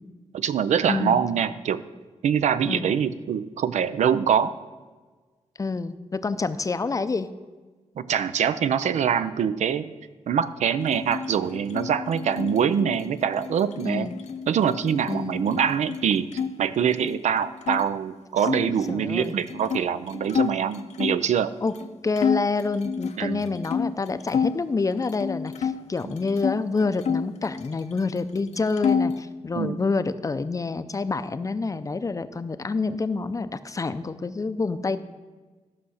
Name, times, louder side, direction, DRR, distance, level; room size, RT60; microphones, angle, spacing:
voice 1, 0.3-1.8 2.2-4.5 8.0-9.9 10.3-14.1 14.5-16.3 16.6-21.5 23.2-23.5 29.5-29.8, right 8 dB, 85° right, 13 dB, 0.5 m, -24 dB
voice 2, 0.9-1.2 2.7-2.9 5.6-7.3 13.8-14.1 15.1-15.4 18.7-19.3 21.6-21.7 22.0-35.0, left 4 dB, 30° left, 12 dB, 0.5 m, -27 dB
sound 1, 10.8-16.5 16.8-17.8 18.4-21.3 21.8-21.9 22.2-24.6 25.0-26.6 27.0-28.1 28.4-29.2, left 6 dB, 75° left, 0.7 m, -29 dB
13.0 x 5.7 x 6.4 m, 1.3 s
wide cardioid pair, 110°, 12 cm